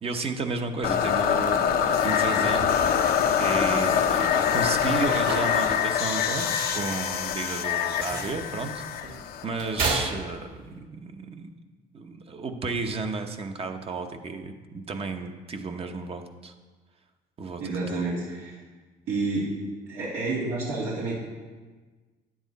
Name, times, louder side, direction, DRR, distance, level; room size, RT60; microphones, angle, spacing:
voice 1, 0.0-2.9 3.4-8.8 9.4-11.5 11.9-16.5 17.4-17.6 17.9-18.1, right 3 dB, 35° right, 6 dB, 1.0 m, -33 dB
sound 1, 0.8-9.9, left 8 dB, 65° left, 0.8 m, -25 dB
sound 2, 2.3-10.8, right 3 dB, 55° right, 2.4 m, -36 dB
voice 2, 17.6-18.6 19.1-19.5 19.9-21.1, right 3 dB, 80° right, -8 dB, 2.6 m, -29 dB
10.0 x 8.8 x 4.1 m, 1.3 s
cardioid pair, 110°, 17 cm